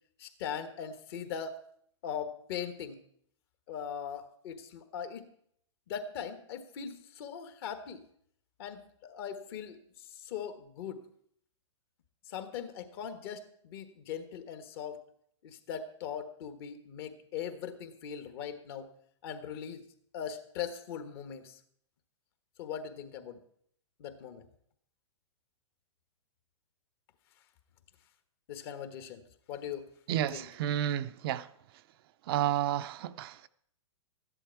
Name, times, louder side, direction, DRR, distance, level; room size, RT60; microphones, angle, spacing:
voice 1, 0.2-1.6 2.0-3.0 3.7-5.3 5.9-8.1 8.6-11.0 12.3-15.0 15.4-18.9 19.2-19.9 20.1-21.6 22.6-23.4 24.0-24.4 28.5-29.2 29.5-29.9 30.3-30.5, left 8 dB, 50° left, 1.4 m, -40 dB
voice 2, 30.1-31.5 32.2-33.5, right 11 dB, 50° right, 0.5 m, -31 dB
13.5 x 10.5 x 4.6 m
hypercardioid pair, 125°, 16 cm